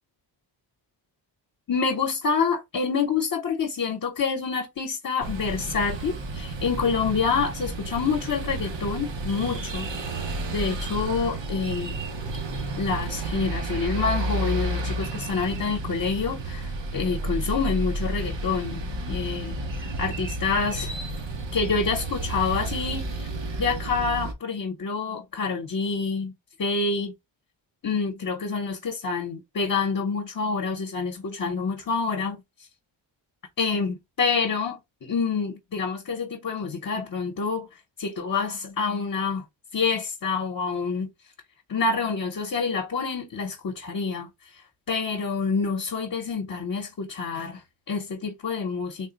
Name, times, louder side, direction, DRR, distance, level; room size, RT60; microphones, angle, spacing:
voice 1, 1.7-9.9 10.5-12.0 12.8-19.6 20.0-20.9 21.5-23.3 23.6-26.3 26.6-27.1 27.8-32.4 33.6-37.7 38.0-39.4 39.7-41.1 41.7-44.6 44.9-49.1, left 5 dB, 45° left, 0.9 m, -27 dB
sound 1, 5.2-24.3, right 2 dB, 70° right, 1.1 m, -31 dB
3.7 x 2.1 x 3.7 m
wide cardioid pair, 110°, 46 cm